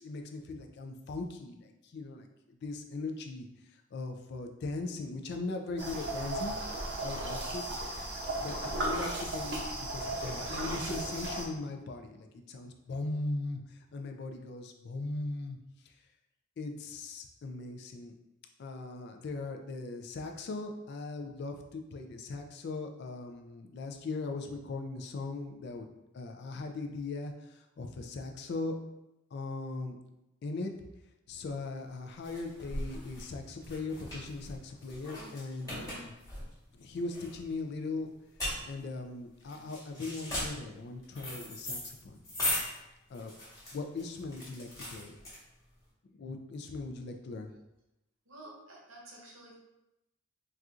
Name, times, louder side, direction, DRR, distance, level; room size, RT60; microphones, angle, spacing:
voice 1, 0.0-6.6 7.0-7.6 8.3-15.6 15.8-15.9 16.6-18.1 18.6-25.9 26.1-28.8 29.3-30.0 30.4-30.7 31.3-36.1 36.7-38.1 38.6-42.2 43.1-43.3 43.7-45.2 46.2-47.5, left 3 dB, 55° left, 4 dB, 0.3 m, -39 dB
sound 1, 5.8-11.5, right 1 dB, 60° right, 0.6 m, -35 dB
sound 2, 31.4-45.8, left 1 dB, 15° left, 1.3 m, -39 dB
voice 2, 48.3-49.5, right 1 dB, 75° right, -3 dB, 0.9 m, -50 dB
4.1 x 2.4 x 2.4 m, 0.93 s
head